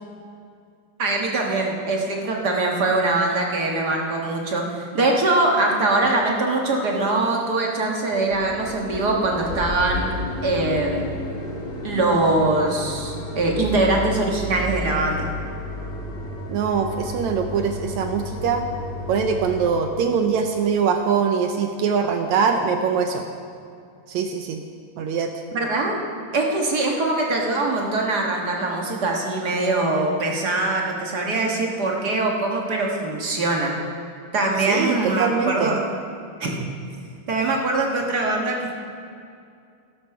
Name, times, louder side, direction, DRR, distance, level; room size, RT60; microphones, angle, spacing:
voice 1, 1.0-4.6 4.9-10.2 10.4-11.1 11.8-15.3 25.5-26.0 26.3-33.7 34.3-35.8 36.4-36.5 37.3-38.8, right 2 dB, 50° right, 0 dB, 1.2 m, -22 dB
sound 1, 6.0-6.1 6.6-7.0 7.3-7.4 7.7-7.9 8.1-19.7, left 2 dB, 25° left, 1.3 m, -32 dB
voice 2, 16.5-18.7 19.1-23.3 24.1-24.6 25.0-25.3 34.6-35.8, right 6 dB, 75° right, 5 dB, 1.8 m, -23 dB
12.5 x 12.5 x 5.8 m, 2.4 s
omnidirectional pair, 3.7 m